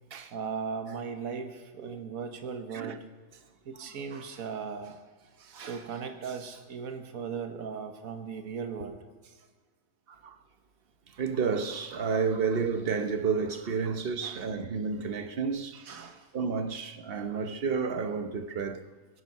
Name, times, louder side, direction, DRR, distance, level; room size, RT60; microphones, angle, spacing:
voice 1, 0.2-3.0 3.7-5.0 5.4-9.0 9.2-9.3 14.2-14.5 15.7-16.3, right 6 dB, 85° right, 1.6 m, -38 dB
voice 2, 11.1-15.8 16.3-18.8, right 5 dB, 50° right, 1.1 m, -31 dB
22.0 x 10.5 x 5.5 m
omnidirectional pair, 1.4 m